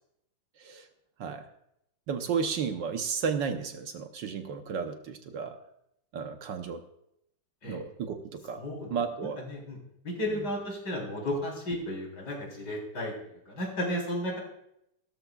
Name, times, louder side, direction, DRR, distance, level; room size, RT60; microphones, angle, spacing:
voice 1, 2.1-5.6 6.1-6.8 7.6-8.6 8.9-9.4, right 6 dB, 65° right, 6 dB, 1.5 m, -33 dB
voice 2, 8.6-9.8 10.0-13.1 13.5-14.4, left 1 dB, 55° left, -1 dB, 4.4 m, -34 dB
17.0 x 13.0 x 2.4 m, 0.78 s
omnidirectional pair, 2.2 m